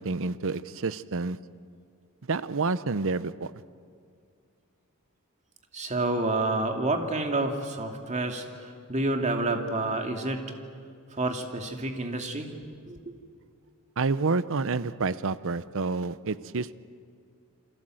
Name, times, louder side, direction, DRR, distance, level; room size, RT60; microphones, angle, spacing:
voice 1, 0.0-1.4 2.3-3.5 14.0-16.7, right 4 dB, 65° right, 0.8 m, -29 dB
voice 2, 5.7-10.4 11.1-12.5 12.9-13.0, right 2 dB, 35° right, 2.5 m, -29 dB
28.5 x 26.0 x 7.8 m
head